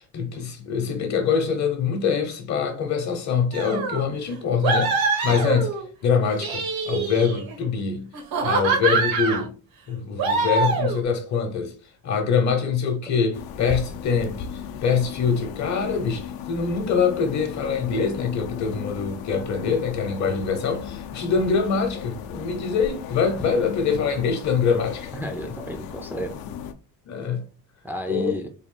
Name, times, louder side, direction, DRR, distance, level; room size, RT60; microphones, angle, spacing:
voice 1, 0.0-5.7 6.0-8.1 8.4-9.5 9.9-11.7 12.0-25.1 27.1-27.4 28.1-28.3, left 6 dB, 50° left, 0.8 m, -24 dB
sound 1, 3.5-4.0 4.6-5.9 6.3-7.5 8.1-9.5 10.2-11.0, right 4 dB, 75° right, 1.2 m, -24 dB
sound 2, 13.3-26.7, left 8 dB, 85° left, 0.6 m, -36 dB
voice 2, 25.2-26.4 27.8-28.5, equal, 5° right, 0.4 m, -32 dB
3.7 x 2.2 x 3.7 m
cardioid pair, 135°, 35 cm